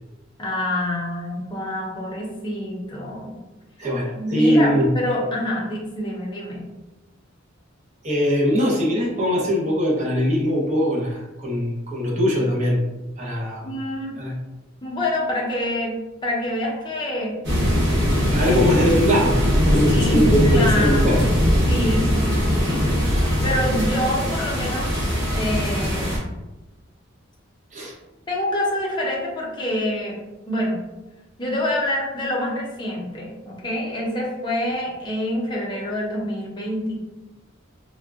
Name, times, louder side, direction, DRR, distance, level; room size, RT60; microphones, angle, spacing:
voice 1, 0.4-3.4 4.1-6.7 13.2-14.1 14.8-17.4 18.5-18.8 19.9-21.3 21.7-22.8 23.4-26.1 28.3-30.2 30.5-30.8 31.4-37.0, left 1 dB, 25° left, -3 dB, 0.7 m, -26 dB
voice 2, 3.8-4.9 8.0-12.8 13.2-13.7 14.2-14.4 18.3-19.4 19.7-21.2 27.7-27.9, equal, 40° right, -4 dB, 0.8 m, -21 dB
sound 1, 17.4-26.2, equal, 60° right, 1.1 m, -20 dB
3.5 x 2.3 x 2.3 m, 1.0 s
head